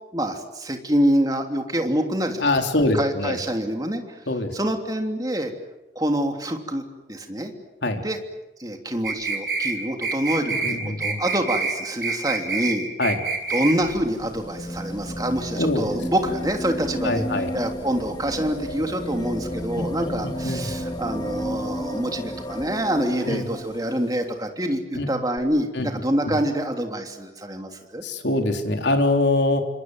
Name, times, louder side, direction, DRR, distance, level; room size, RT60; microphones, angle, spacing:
voice 1, 0.1-2.5 2.9-4.2 4.5-5.5 5.9-6.8 7.1-7.5 8.0-8.2 8.6-12.9 13.5-17.2 17.5-28.0, right 1 dB, 20° right, 4 dB, 3.1 m, -26 dB
voice 2, 2.4-3.4 4.3-4.5 7.8-8.0 10.5-11.2 13.0-13.2 15.6-15.8 17.0-17.5 19.8-20.7 23.3-23.5 24.9-25.1 25.7-25.9 26.3-26.4 28.0-29.6, left 2 dB, 75° left, 4 dB, 3.7 m, -24 dB
sound 1, 9.0-9.7 10.0-10.8 11.0-11.8 12.0-12.8 13.0-13.8, right 4 dB, 55° right, 4.2 m, -26 dB
sound 2, 13.2-24.2 25.4-25.5, equal, 25° left, 2.1 m, -33 dB
28.5 x 25.5 x 7.9 m, 1.0 s
head